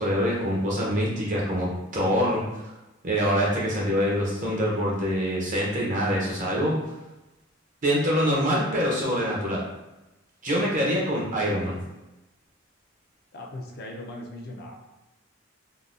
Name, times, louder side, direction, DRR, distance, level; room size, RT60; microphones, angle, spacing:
voice 1, 0.0-1.7 1.9-2.7 3.0-6.7 7.8-9.6 10.4-11.8, equal, 40° right, -5 dB, 0.8 m, -25 dB
voice 2, 13.3-14.7, left 1 dB, 50° left, -1 dB, 0.5 m, -39 dB
3.8 x 2.2 x 2.5 m, 1.0 s
head